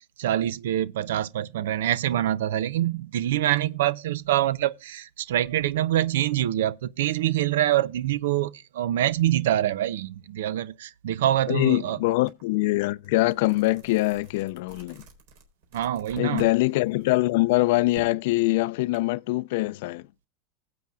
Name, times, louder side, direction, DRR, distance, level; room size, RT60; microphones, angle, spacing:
voice 1, 0.2-12.0 15.7-16.4, right 12 dB, 85° right, 0.5 m, -25 dB
voice 2, 11.5-15.0 16.2-20.1, left 20 dB, 65° left, 0.4 m, -23 dB
sound 1, 12.3-12.4 12.8-16.6 16.9-19.0, right 3 dB, 65° right, 3.8 m, -49 dB
20.0 x 7.8 x 2.3 m
supercardioid pair, 145°, 0 cm